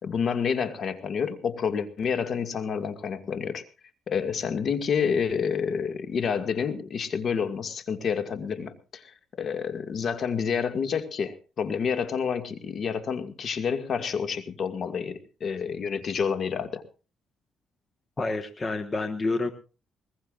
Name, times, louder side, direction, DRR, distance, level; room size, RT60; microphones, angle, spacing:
voice 1, 0.0-3.6 4.1-16.8, left 6 dB, 55° left, 9 dB, 1.9 m, -29 dB
voice 2, 18.2-19.5, left 3 dB, 30° left, 8 dB, 1.4 m, -28 dB
21.0 x 21.0 x 2.5 m, 0.33 s
cardioid pair, 90°, 0 cm